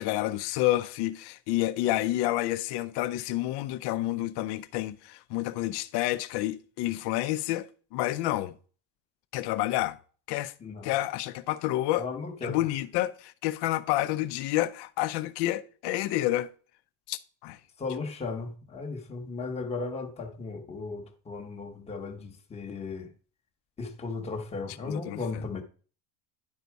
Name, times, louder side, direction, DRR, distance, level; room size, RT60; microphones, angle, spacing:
voice 1, 0.0-8.6 9.3-10.0 10.3-10.5 10.8-12.1 12.4-16.5 17.1-17.6 24.7-25.4, left 15 dB, 55° left, 0.6 m, -29 dB
voice 2, 11.9-12.6 17.8-23.1 23.8-25.6, left 4 dB, 15° left, 0.9 m, -36 dB
10.5 x 4.0 x 4.6 m
cardioid pair, 175°, 48 cm